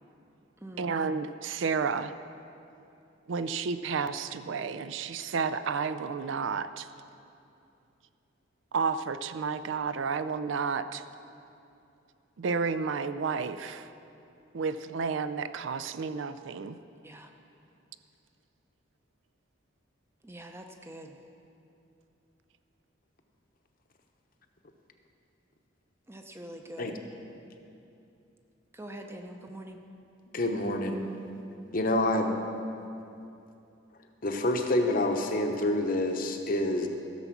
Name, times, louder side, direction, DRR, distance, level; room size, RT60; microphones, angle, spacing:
voice 1, 0.8-2.1 3.3-6.9 8.7-11.0 12.4-13.9 14.5-16.8, right 5 dB, 65° right, 12 dB, 0.4 m, -31 dB
voice 2, 20.2-21.2 26.1-27.0 28.7-29.8, right 1 dB, 10° right, 4 dB, 0.6 m, -44 dB
voice 3, 30.3-31.1 31.7-32.3 34.2-36.9, left 1 dB, 45° left, 5 dB, 0.8 m, -27 dB
15.0 x 6.9 x 6.1 m, 2.7 s
head